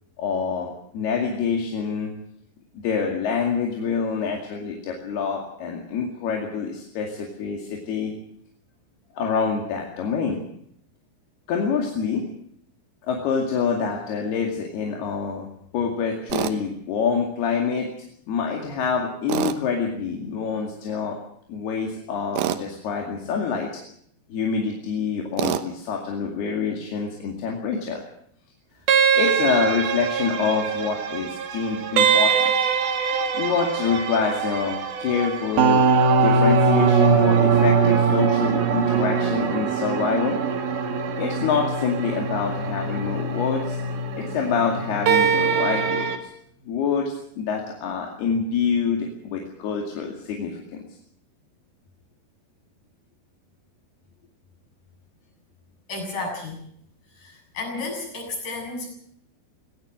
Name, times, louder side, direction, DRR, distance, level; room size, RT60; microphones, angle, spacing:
voice 1, 0.2-2.1 2.8-8.1 9.1-10.4 11.5-12.2 13.1-15.5 15.7-17.9 18.3-21.2 21.5-23.7 24.3-28.0 29.1-32.4 33.4-35.8 36.2-40.4 41.1-43.8 44.2-46.1 46.7-50.8, left 6 dB, 55° left, 1 dB, 3.9 m, -26 dB
Tools, 16.3-16.6 19.3-19.6 22.3-22.6 25.4-25.7, right 11 dB, 70° right, 2.5 m, -25 dB
sound 1, 28.9-46.2, right 6 dB, 55° right, 3.6 m, -22 dB
voice 2, 55.9-56.6 57.2-58.9, left 3 dB, 40° left, 1 dB, 8.5 m, -32 dB
19.5 x 17.5 x 7.8 m, 0.69 s
omnidirectional pair, 5.9 m